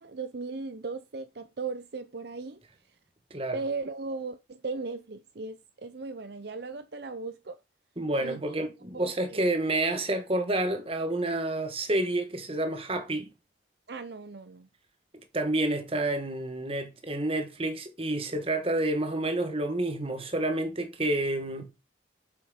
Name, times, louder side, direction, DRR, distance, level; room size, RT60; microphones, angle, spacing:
voice 1, 0.0-2.6 3.5-7.6 8.2-8.6 8.9-9.5 13.9-14.7, right 3 dB, 60° right, 0.6 m, -37 dB
voice 2, 8.0-13.3 15.3-21.7, right 1 dB, 30° right, 1.5 m, -29 dB
7.5 x 7.1 x 5.1 m
head